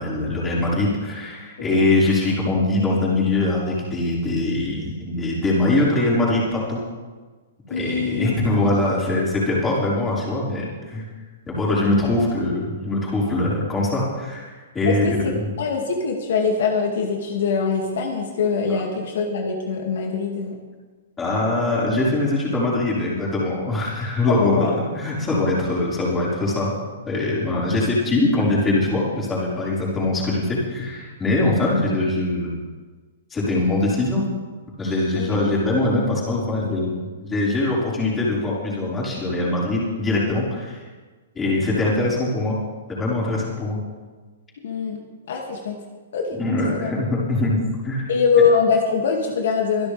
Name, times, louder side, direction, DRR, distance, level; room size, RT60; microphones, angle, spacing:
voice 1, 0.0-6.8 7.7-11.0 11.4-15.5 21.2-26.8 27.0-32.5 33.3-34.2 34.8-40.8 41.3-42.6 43.0-43.8 46.3-48.1, left 2 dB, 15° left, -6 dB, 5.1 m, -22 dB
voice 2, 7.7-8.3 11.8-11.9 14.9-20.6 24.4-24.8 35.1-35.5 44.6-45.0 45.3-45.8 46.1-46.4 46.6-46.9 48.1-49.9, left 5 dB, 70° left, 1 dB, 2.4 m, -23 dB
24.5 x 11.5 x 3.5 m, 1.4 s
hypercardioid pair, 145°, 0 cm